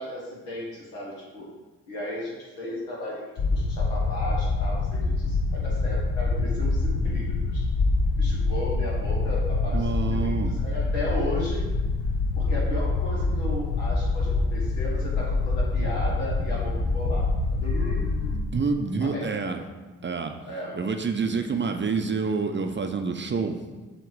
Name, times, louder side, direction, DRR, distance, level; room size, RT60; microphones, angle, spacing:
voice 1, 0.0-1.5 1.9-3.2 3.5-7.6 8.2-11.7 12.4-18.3 19.0-19.6 20.4-20.8, left 1 dB, 80° left, -4 dB, 1.7 m, -35 dB
sound 1, 3.4-18.4, left 3 dB, 50° left, 0.9 m, -25 dB
voice 2, 9.7-10.6 18.3-19.6 20.0-20.3 20.7-23.6, right 4 dB, 25° right, 6 dB, 0.6 m, -27 dB
7.2 x 3.0 x 4.6 m, 1.2 s
hypercardioid pair, 40°, 42 cm